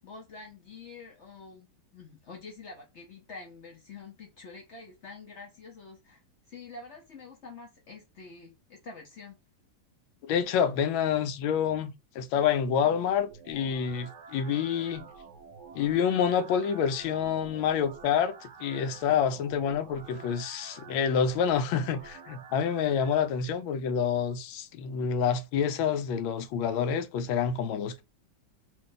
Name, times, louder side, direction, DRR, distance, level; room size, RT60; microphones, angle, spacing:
voice 1, 0.0-9.4, left 4 dB, 65° left, 0.7 m, -47 dB
voice 2, 10.2-15.0 15.8-28.0, left 7 dB, 85° left, 1.4 m, -28 dB
sound 1, 13.1-23.1, right 5 dB, 65° right, 1.1 m, -49 dB
3.1 x 2.6 x 3.8 m
omnidirectional pair, 2.1 m